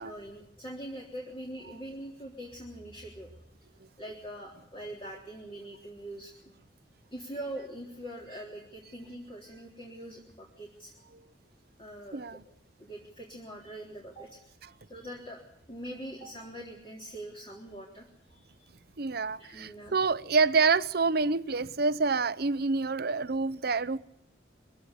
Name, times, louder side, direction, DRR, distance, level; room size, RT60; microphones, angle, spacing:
voice 1, 0.0-3.3 4.0-6.5 7.1-10.9 11.8-12.4 12.8-14.4 14.9-15.4 15.7-18.7 19.4-19.9, right 1 dB, 30° left, 3.7 m, -43 dB
voice 2, 12.1-12.4 19.0-24.0, right 4 dB, 60° right, 0.8 m, -27 dB
23.0 x 16.0 x 8.5 m
head